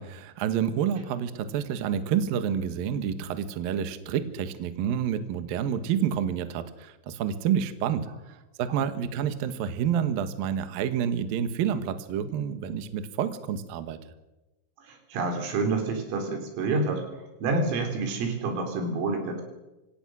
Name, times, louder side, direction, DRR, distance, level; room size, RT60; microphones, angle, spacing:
voice 1, 0.0-8.1 8.6-14.0, right 8 dB, 65° right, 10 dB, 2.6 m, -28 dB
voice 2, 14.9-17.0 17.4-19.4, right 3 dB, 90° right, 4 dB, 6.3 m, -28 dB
26.0 x 17.5 x 6.3 m, 1.0 s
omnidirectional pair, 5.7 m